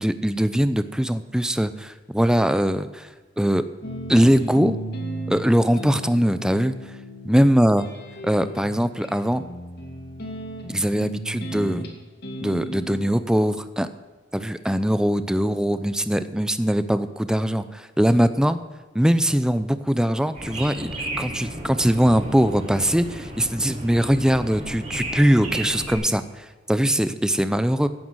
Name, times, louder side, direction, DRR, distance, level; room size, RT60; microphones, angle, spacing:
voice 1, 0.0-3.1 3.4-3.7 4.1-4.8 5.3-6.7 7.2-7.8 8.2-9.4 10.7-11.8 12.4-13.9 14.3-18.6 18.9-20.9 21.2-27.9, equal, 5° right, 11 dB, 0.6 m, -21 dB
sound 1, 3.8-13.1, equal, 60° left, 2.3 m, -35 dB
sound 2, 20.3-25.9, right 1 dB, 35° right, 5.7 m, -33 dB
16.0 x 9.3 x 6.2 m, 1.3 s
head